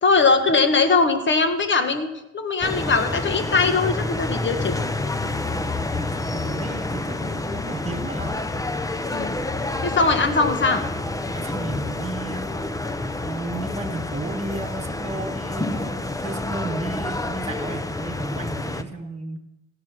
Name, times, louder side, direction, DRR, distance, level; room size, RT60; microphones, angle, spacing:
voice 1, 0.0-4.9 9.1-9.4 9.8-10.8, left 4 dB, 40° left, 7 dB, 1.5 m, -21 dB
sound 1, 2.6-18.8, left 2 dB, 10° left, 0.6 m, -28 dB
voice 2, 5.5-8.4 11.3-12.5 13.2-19.4, right 2 dB, 20° right, 5 dB, 1.6 m, -33 dB
15.5 x 6.3 x 5.9 m, 0.93 s
cardioid pair, 90°, 30 cm